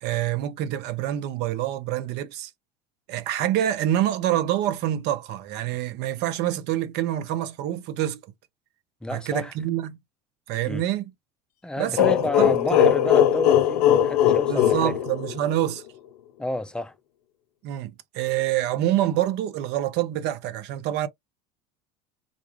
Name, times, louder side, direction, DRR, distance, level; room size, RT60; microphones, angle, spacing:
voice 1, 0.0-2.5 3.1-8.2 9.1-10.0 10.5-11.1 11.8-12.5 14.5-15.8 17.6-21.1, right 12 dB, 55° right, 0.6 m, -26 dB
voice 2, 9.0-9.5 10.7-10.8 11.6-14.9 16.4-16.9, left 1 dB, 5° left, 0.4 m, -30 dB
Evil monster laugh, 12.0-15.7, left 10 dB, 80° left, 0.5 m, -20 dB
3.8 x 2.3 x 3.0 m
hypercardioid pair, 75°, 20 cm